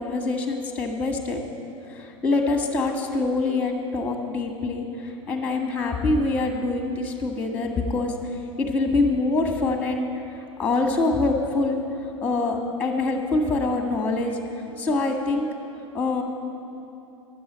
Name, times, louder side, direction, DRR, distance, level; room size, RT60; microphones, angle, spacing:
voice 1, 0.0-1.4 1.9-14.3 14.8-15.5 15.9-16.2, left 3 dB, 10° left, 3 dB, 1.5 m, -25 dB
10.5 x 7.8 x 9.7 m, 2.9 s
figure-of-eight pair, 90°, 17 cm